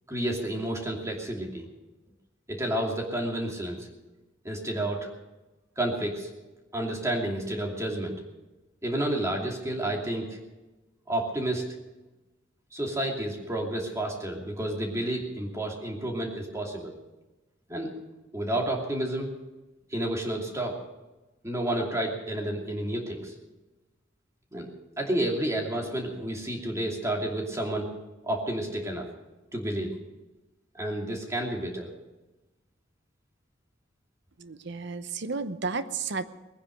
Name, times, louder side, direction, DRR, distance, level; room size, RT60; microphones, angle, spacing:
voice 1, 0.1-1.7 2.5-3.9 4.4-5.1 5.8-6.3 6.7-8.2 8.8-10.4 11.1-11.6 12.7-16.9 17.7-17.9 18.3-19.3 19.9-20.7 21.4-23.3 24.5-24.7 25.0-27.9 28.2-29.1 29.5-29.9 30.7-31.9, right 1 dB, 15° right, 0 dB, 2.7 m, -30 dB
voice 2, 34.4-36.2, right 4 dB, 60° right, 12 dB, 0.8 m, -32 dB
20.0 x 9.9 x 6.5 m, 1.1 s
head